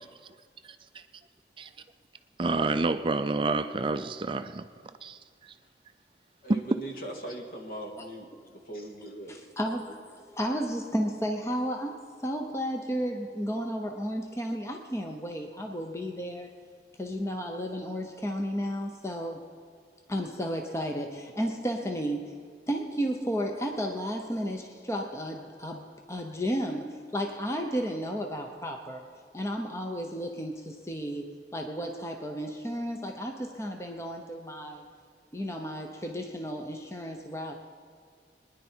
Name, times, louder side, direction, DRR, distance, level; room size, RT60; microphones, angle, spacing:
voice 1, 2.4-4.7 5.0-5.6 6.5-6.6, right 3 dB, 30° right, 0.4 m, -28 dB
voice 2, 6.4-9.3, right 1 dB, 55° left, 2.0 m, -40 dB
voice 3, 9.3-16.5 17.0-19.4 20.1-29.1 29.3-34.9 35.3-37.5, equal, 15° left, 0.8 m, -33 dB
23.0 x 10.5 x 4.5 m
head